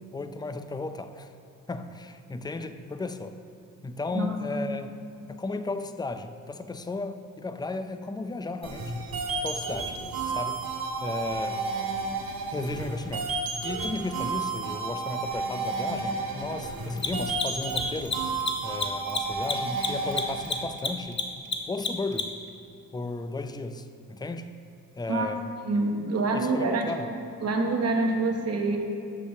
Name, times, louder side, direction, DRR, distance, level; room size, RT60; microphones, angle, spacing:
voice 1, 0.0-1.3 1.7-3.4 3.8-5.0 5.3-8.9 9.4-10.0 10.3-10.7 11.0-11.6 12.5-13.3 13.6-18.3 18.6-21.2 21.7-22.3 22.9-24.6 25.0-25.5 26.3-27.1, left 3 dB, 10° left, 9 dB, 0.4 m, -34 dB
voice 2, 4.1-4.7 25.1-25.3 25.6-26.9 27.4-28.8, right 3 dB, 45° right, 2 dB, 1.2 m, -26 dB
sound 1, 8.6-20.6, right 4 dB, 70° right, 1.5 m, -32 dB
Mechanisms, 13.8-13.9 16.9-22.5, left 4 dB, 30° left, 0.8 m, -30 dB
6.7 x 5.3 x 6.8 m, 2.7 s
cardioid pair, 85°, 36 cm